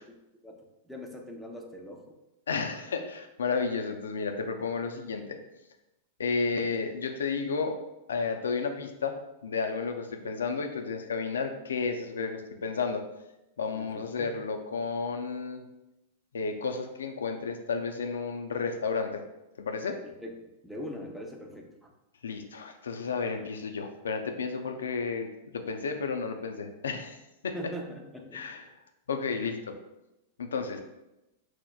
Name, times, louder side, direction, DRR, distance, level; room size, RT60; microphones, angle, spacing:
voice 1, 0.9-2.0 13.7-14.4 20.0-20.4 20.6-21.9 27.5-28.4, equal, ahead, 0 dB, 0.6 m, -41 dB
voice 2, 2.5-5.4 6.2-7.8 8.1-13.0 13.6-15.6 16.3-19.2 19.6-20.0 22.2-27.6 28.3-28.6 29.1-29.8 30.4-30.8, left 4 dB, 85° left, 5 dB, 0.4 m, -32 dB
5.8 x 2.1 x 2.3 m, 0.94 s
hypercardioid pair, 110°, 0 cm